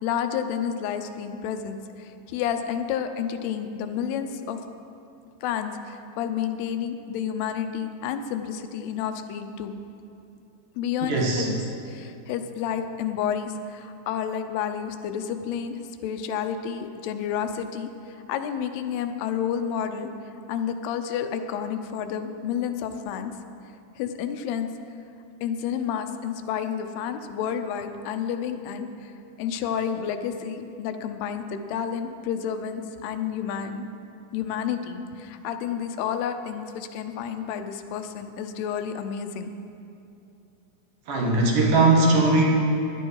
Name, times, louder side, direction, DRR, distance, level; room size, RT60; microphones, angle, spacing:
voice 1, 0.0-4.6 5.4-9.7 10.8-11.6 11.9-20.1 20.5-23.3 24.0-24.7 25.4-29.1 29.4-33.9 34.3-39.5, left 8 dB, 90° left, 7 dB, 2.8 m, -30 dB
voice 2, 11.1-11.5 41.1-42.4, right 2 dB, 60° right, -2 dB, 3.0 m, -19 dB
17.0 x 11.5 x 4.7 m, 2.7 s
omnidirectional pair, 4.5 m